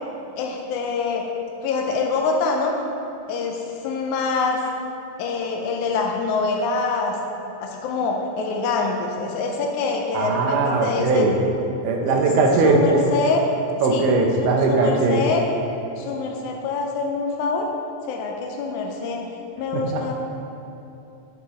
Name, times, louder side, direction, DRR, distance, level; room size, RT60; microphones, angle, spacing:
voice 1, 0.4-1.3 1.6-2.8 3.3-4.6 5.2-7.2 7.6-11.3 12.0-12.3 12.6-13.4 13.9-14.1 14.4-15.4 16.0-17.7 18.1-19.2 19.6-20.1, left 4 dB, 80° left, 1 dB, 2.0 m, -25 dB
voice 2, 10.1-11.4 11.8-13.0 13.8-15.2 19.7-20.1, right 3 dB, 80° right, 1 dB, 2.2 m, -20 dB
8.3 x 5.6 x 3.0 m, 2.8 s
omnidirectional pair, 3.6 m